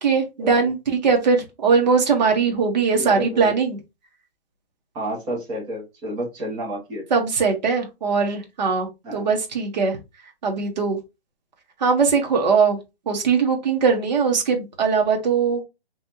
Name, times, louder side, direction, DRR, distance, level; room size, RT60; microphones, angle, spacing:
voice 1, 0.0-3.8 7.1-10.0 10.4-11.0 11.8-12.8 13.0-15.6, right 5 dB, 40° right, 1.4 m, -20 dB
voice 2, 2.9-3.5 4.9-7.0 9.0-9.3, right 1 dB, 15° right, 1.1 m, -30 dB
3.7 x 3.3 x 2.9 m
hypercardioid pair, 160°, 32 cm